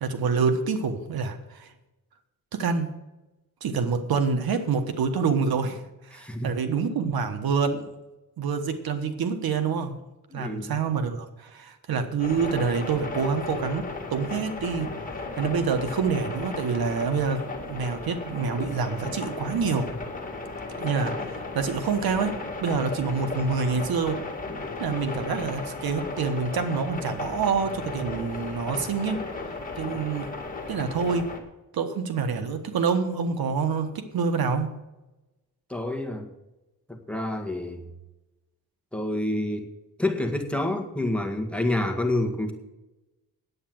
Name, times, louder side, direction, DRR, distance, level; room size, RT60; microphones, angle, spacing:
voice 1, 0.0-1.7 2.5-2.9 3.6-7.9 8.4-10.0 10.3-15.0 15.4-19.9 20.8-24.2 24.8-29.3 29.8-30.3 30.7-31.3 31.7-34.7, right 5 dB, 75° right, 8 dB, 1.4 m, -27 dB
voice 2, 6.1-6.5 10.3-10.8 35.7-36.3 36.9-37.8 38.9-39.7 40.0-42.5, left 1 dB, 5° left, 2 dB, 1.8 m, -28 dB
sound 1, 12.2-31.4, left 3 dB, 20° left, 2.2 m, -35 dB
9.5 x 8.8 x 7.7 m, 1.0 s
cardioid pair, 110°, 37 cm